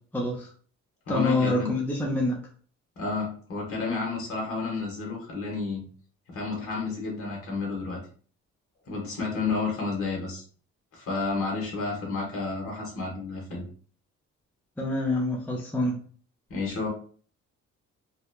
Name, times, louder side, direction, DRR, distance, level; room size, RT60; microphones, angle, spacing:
voice 1, 0.1-0.5 1.1-2.4 14.8-16.0, left 2 dB, 5° left, -1 dB, 0.5 m, -26 dB
voice 2, 1.1-1.7 3.0-5.8 6.3-8.0 8.9-10.4 10.9-13.6 16.5-16.9, left 3 dB, 50° left, -2 dB, 1.1 m, -31 dB
2.8 x 2.1 x 2.2 m, 0.44 s
cardioid pair, 90°, 30 cm